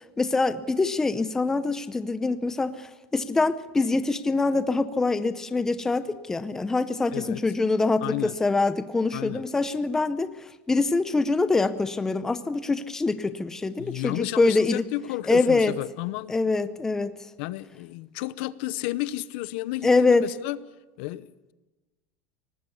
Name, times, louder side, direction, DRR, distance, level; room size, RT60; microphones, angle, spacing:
voice 1, 0.2-2.9 3.1-10.3 10.7-14.8 15.3-15.7 16.3-17.1 19.8-20.3, left 3 dB, 5° left, 12 dB, 0.6 m, -24 dB
voice 2, 8.0-8.4 9.1-9.4 13.8-16.3 17.4-20.6 21.0-21.3, left 17 dB, 60° left, 17 dB, 0.8 m, -32 dB
23.5 x 19.0 x 7.1 m, 1.1 s
cardioid pair, 180°, 7 cm